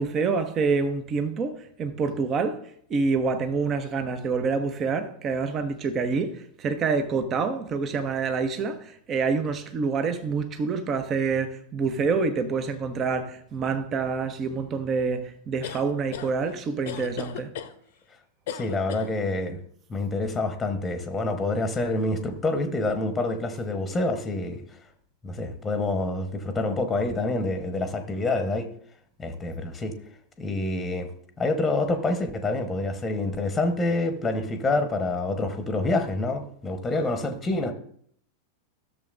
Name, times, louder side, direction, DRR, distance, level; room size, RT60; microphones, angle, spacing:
voice 1, 0.0-2.6 2.9-17.5, right 4 dB, 30° right, 0.9 m, -27 dB
sound 1, 15.6-16.3 16.9-17.7 18.5-19.1, left 9 dB, 55° left, 0.7 m, -36 dB
voice 2, 18.5-19.6 19.9-24.6 25.2-28.7 29.2-29.9 30.4-31.1 31.4-37.7, left 2 dB, 15° left, 1.1 m, -27 dB
14.0 x 6.8 x 2.5 m
figure-of-eight pair, 90°, 0 cm